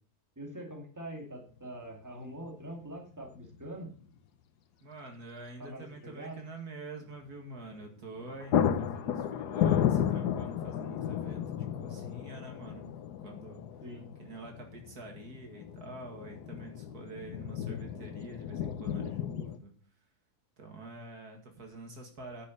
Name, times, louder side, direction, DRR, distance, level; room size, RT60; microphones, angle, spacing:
voice 1, 0.4-3.9 5.6-6.4 13.8-14.1, right 1 dB, 10° right, 1 dB, 2.4 m, -43 dB
sound 1, 1.6-1.7 3.3-3.7 3.9-4.0 7.7-7.9 8.2-19.6, left 9 dB, 85° left, 1.3 m, -33 dB
voice 2, 4.8-13.0 13.2-13.6 14.2-19.7 20.6-22.5, right 2 dB, 70° right, 3 dB, 2.6 m, -47 dB
9.7 x 6.4 x 6.5 m, 0.44 s
omnidirectional pair, 1.7 m